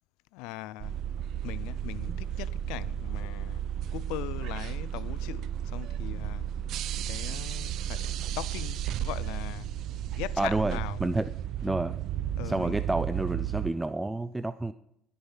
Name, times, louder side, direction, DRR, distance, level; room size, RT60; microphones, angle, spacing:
voice 1, 0.3-1.0 1.4-3.6 3.9-6.5 7.1-9.7 10.2-11.0 12.4-12.8, left 17 dB, 80° left, 0.5 m, -40 dB
sound 1, 0.8-13.7, right 10 dB, 65° right, 0.6 m, -33 dB
voice 2, 10.4-11.3 11.6-12.0 12.4-14.7, right 2 dB, 10° right, 0.6 m, -29 dB
16.0 x 7.2 x 5.6 m
supercardioid pair, 85°, 0 cm